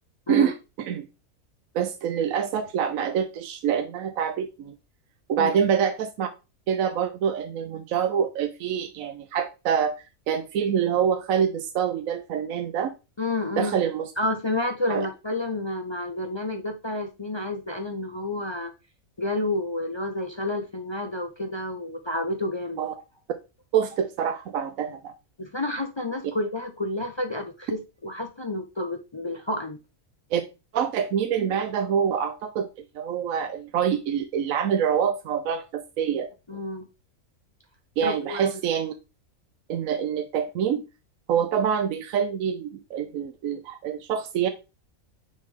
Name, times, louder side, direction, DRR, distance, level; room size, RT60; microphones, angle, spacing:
voice 1, 0.3-1.1 1.7-4.7 5.3-6.3 6.7-9.9 10.3-12.9 13.6-14.1 14.9-15.1 22.8-22.9 23.7-25.1 30.3-30.4 30.7-32.7 32.9-36.3 38.0-38.9 39.7-40.8 41.3-44.5, right 8 dB, 75° right, 7 dB, 1.1 m, -26 dB
voice 2, 13.2-13.8 14.2-18.7 19.2-22.8 25.4-29.8 36.5-36.8 38.0-38.5, left 2 dB, 35° left, 4 dB, 0.4 m, -30 dB
9.1 x 3.7 x 3.2 m, 0.28 s
omnidirectional pair, 1.5 m